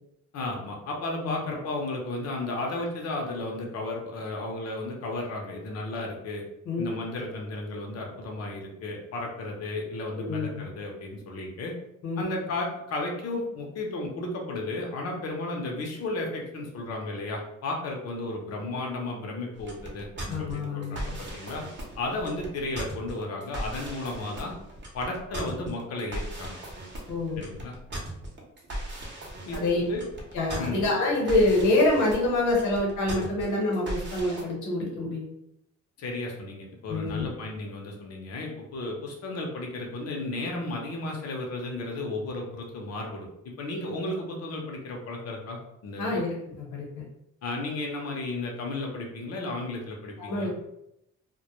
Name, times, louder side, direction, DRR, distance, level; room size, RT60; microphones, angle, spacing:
voice 1, 0.3-6.4 6.8-11.7 12.2-20.1 20.4-21.6 22.0-24.5 24.9-26.6 27.4-27.7 29.5-30.0 30.6-30.8 36.0-46.2 47.4-50.5, left 2 dB, 55° left, 0 dB, 0.6 m, -34 dB
voice 2, 6.7-7.0 10.2-10.7 12.0-12.2 20.3-21.0 27.1-27.4 29.5-29.8 30.3-35.3 36.9-37.3 46.0-46.3 46.7-47.0 50.2-50.5, left 2 dB, 75° left, -2 dB, 1.0 m, -26 dB
sound 1, 19.5-34.4, right 1 dB, 40° right, 0.7 m, -38 dB
2.1 x 2.1 x 2.9 m, 0.83 s
cardioid pair, 90°, 30 cm